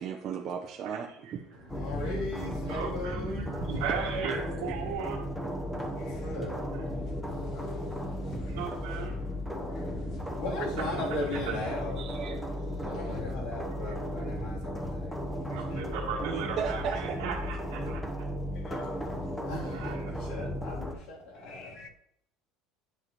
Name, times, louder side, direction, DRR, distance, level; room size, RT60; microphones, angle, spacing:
voice 1, 0.0-1.7 2.0-2.1 3.7-4.6 12.0-12.4 12.7-13.4 16.2-17.2, right 7 dB, 35° right, 0.6 m, -37 dB
voice 2, 1.7-3.6 5.7-8.6 9.1-12.4 12.8-16.0 19.4-21.8, left 1 dB, 70° left, 2.8 m, -39 dB
sound 1, 1.7-20.9, equal, 5° left, 0.8 m, -35 dB
voice 3, 2.7-5.3 6.7-6.8 7.4-7.5 8.5-9.1 10.8-10.9 11.5-11.7 13.8-14.0 15.5-18.0 19.6-20.1, right 6 dB, 90° right, 1.2 m, -37 dB
voice 4, 6.0-6.3 7.3-7.8 8.4-8.6 9.8-10.0 18.6-19.8 21.5-21.9, left 5 dB, 45° left, 0.7 m, -46 dB
9.4 x 5.1 x 2.9 m
cardioid pair, 150°, 0 cm